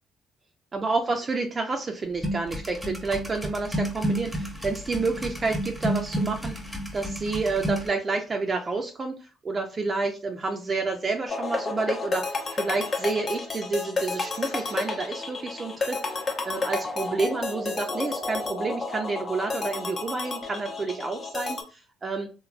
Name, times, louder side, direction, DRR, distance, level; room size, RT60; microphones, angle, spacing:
voice 1, 0.7-22.3, right 3 dB, 35° right, 3 dB, 0.4 m, -29 dB
sound 1, 2.2-7.9, equal, 5° left, 0.7 m, -30 dB
sound 2, 11.3-21.6, left 3 dB, 40° left, 0.6 m, -31 dB
3.2 x 2.1 x 2.4 m, 0.34 s
cardioid pair, 95°, 0 cm